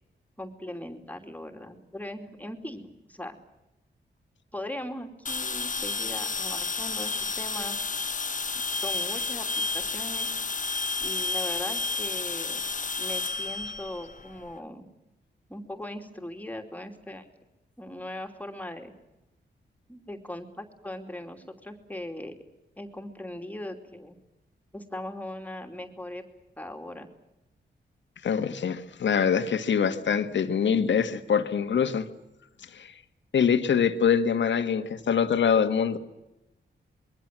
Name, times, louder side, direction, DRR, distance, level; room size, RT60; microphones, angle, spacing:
voice 1, 0.4-3.4 4.5-7.8 8.8-10.3 11.0-12.6 13.0-14.9 15.5-17.3 17.8-18.9 19.9-22.3 22.8-24.2 24.7-26.2 26.6-27.1, left 1 dB, 10° left, 4 dB, 2.9 m, -39 dB
sound 1, 5.3-14.5, left 4 dB, 45° left, 1.3 m, -31 dB
voice 2, 28.2-32.1 32.7-32.9 33.3-36.0, left 7 dB, 80° left, 9 dB, 1.8 m, -24 dB
26.5 x 22.5 x 7.6 m, 0.96 s
cardioid pair, 85°, 19 cm